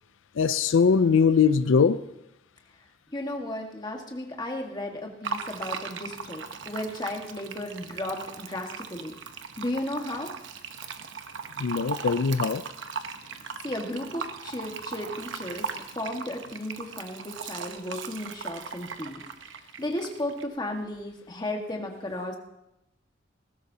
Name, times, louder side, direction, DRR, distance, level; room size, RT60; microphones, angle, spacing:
voice 1, 0.4-2.0 11.6-12.6, left 5 dB, 90° left, 0.4 m, -21 dB
voice 2, 3.1-9.1 9.6-10.3 13.6-15.7 15.9-19.2 19.8-22.4, left 1 dB, 20° left, 1.6 m, -34 dB
Fill (with liquid), 5.2-20.4, right 5 dB, 75° right, 0.9 m, -38 dB
19.0 x 15.5 x 2.8 m
head